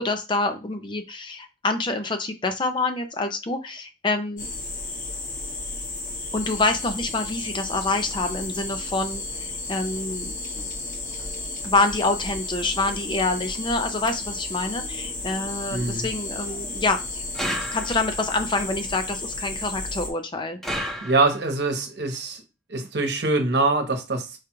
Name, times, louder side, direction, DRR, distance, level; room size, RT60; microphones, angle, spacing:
voice 1, 0.0-4.5 6.3-10.7 11.6-17.2 17.7-20.6, left 3 dB, 25° left, 7 dB, 0.5 m, -26 dB
sound 1, 4.4-20.1, left 2 dB, 50° left, 1.2 m, -33 dB
voice 2, 15.7-16.1 21.0-22.4 22.7-24.4, right 3 dB, 65° right, 5 dB, 1.0 m, -24 dB
sound 2, 17.3-18.3 20.6-21.6, equal, ahead, 0.8 m, -31 dB
4.8 x 2.4 x 4.5 m, 0.27 s
head